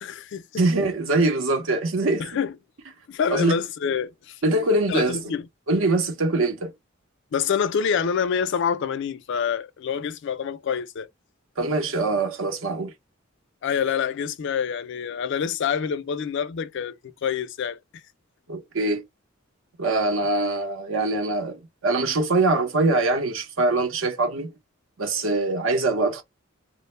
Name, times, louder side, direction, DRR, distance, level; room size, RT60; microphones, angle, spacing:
voice 1, 0.0-0.6 2.2-2.5 3.1-4.6 4.9-5.4 7.3-11.1 13.6-16.9 17.2-18.0, left 7 dB, 60° left, 0.3 m, -27 dB
voice 2, 0.6-2.4 3.3-3.6 4.4-5.2 5.7-6.7 11.6-12.9 18.5-19.0 19.8-24.5 25.0-26.2, right 2 dB, 70° right, 0.7 m, -23 dB
2.1 x 2.1 x 3.1 m
head